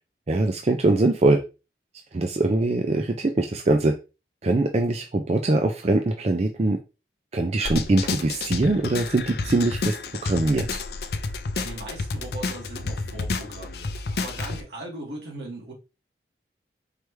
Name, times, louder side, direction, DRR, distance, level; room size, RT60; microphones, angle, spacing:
voice 1, 0.3-1.4 2.1-4.0 4.4-6.8 7.3-10.0 10.2-10.7, right 2 dB, 35° right, 0.4 m, -22 dB
sound 1, 7.6-14.6, left 3 dB, 65° left, 0.5 m, -30 dB
voice 2, 11.5-15.7, right 1 dB, 75° right, 2.0 m, -38 dB
4.8 x 3.3 x 3.1 m
head